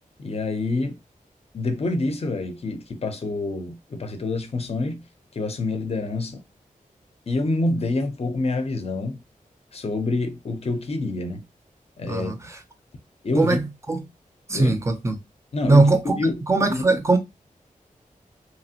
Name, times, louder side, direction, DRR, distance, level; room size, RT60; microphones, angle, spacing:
voice 1, 0.2-1.0 1.5-5.0 5.3-6.4 7.3-9.2 9.7-11.4 12.0-12.5 13.2-13.6 14.5-14.8 15.5-15.9 16.2-16.4 16.7-17.0, left 2 dB, 45° left, 0.6 m, -27 dB
voice 2, 14.5-15.2 15.7-16.2 16.5-17.2, right 2 dB, 20° right, 0.5 m, -19 dB
2.9 x 2.4 x 2.8 m
wide cardioid pair, 125°, 14 cm